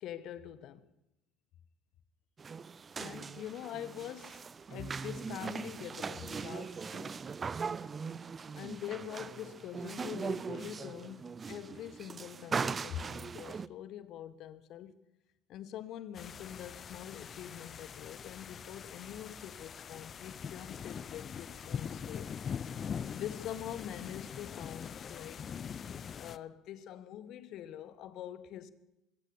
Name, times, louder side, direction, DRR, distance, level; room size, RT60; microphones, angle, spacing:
voice 1, 0.0-0.8 3.0-4.4 4.7-7.2 8.6-15.0 15.5-22.3 23.1-25.5 26.2-28.7, left 11 dB, 55° left, 1.5 m, -44 dB
sound 1, 2.4-13.7, right 5 dB, 30° right, 0.6 m, -40 dB
sound 2, 16.1-26.4, left 7 dB, 40° left, 0.7 m, -43 dB
22.0 x 16.5 x 7.2 m
figure-of-eight pair, 60°, 0 cm